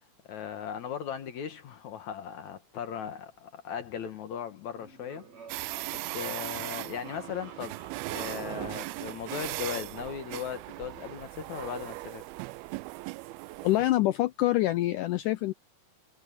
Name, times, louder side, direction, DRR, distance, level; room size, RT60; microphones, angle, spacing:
voice 1, 0.2-5.3 5.6-7.8 8.1-12.2, left 8 dB, 60° left, 2.3 m, -38 dB
sound 1, 4.7-9.8, right 5 dB, 50° right, 4.3 m, -51 dB
sound 2, 5.5-13.9, right 21 dB, 90° right, 2.5 m, -38 dB
voice 2, 13.6-15.5, left 16 dB, 80° left, 1.9 m, -25 dB
omnidirectional pair, 4.3 m